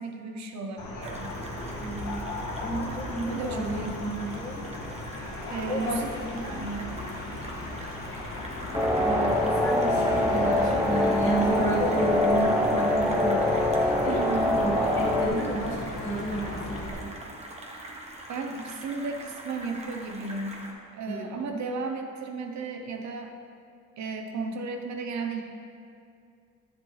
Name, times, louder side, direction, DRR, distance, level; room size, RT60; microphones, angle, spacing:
voice 1, 0.0-1.3 3.3-4.0 5.5-6.9 10.6-10.7 14.1-14.6 15.2-15.5 18.3-20.6 20.9-23.4 24.0-25.4, right 3 dB, 65° right, 4 dB, 0.9 m, -34 dB
sound 1, 0.8-16.9, left 2 dB, 70° left, 1.6 m, -36 dB
sound 2, 1.0-20.7, right 1 dB, 20° right, 1.2 m, -43 dB
voice 2, 1.8-2.2 2.6-4.7 5.7-6.0 6.4-6.6 9.0-14.2 14.6-17.1 21.1-21.5, right 1 dB, 25° left, -10 dB, 1.8 m, -31 dB
sound 3, 8.7-15.3, left 1 dB, 5° right, 1.3 m, -24 dB
10.0 x 7.0 x 3.3 m, 2.4 s
cardioid pair, 90°, 30 cm